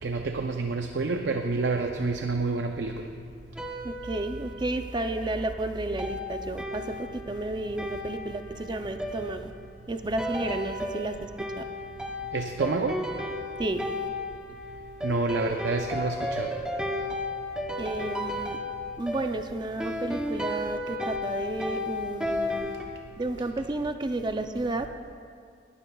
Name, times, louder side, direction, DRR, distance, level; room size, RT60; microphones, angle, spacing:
voice 1, 0.0-3.1 12.3-13.0 15.0-16.5, right 3 dB, 80° right, 5 dB, 0.6 m, -28 dB
sound 1, 3.6-5.1 6.0-22.8, left 1 dB, 5° right, 0.8 m, -34 dB
voice 2, 3.8-9.5 9.9-11.2 11.6-11.7 13.6-13.9 17.8-18.6 19.0-22.7 23.2-24.9, right 2 dB, 25° right, 7 dB, 0.4 m, -32 dB
18.5 x 12.5 x 2.3 m, 2.2 s
head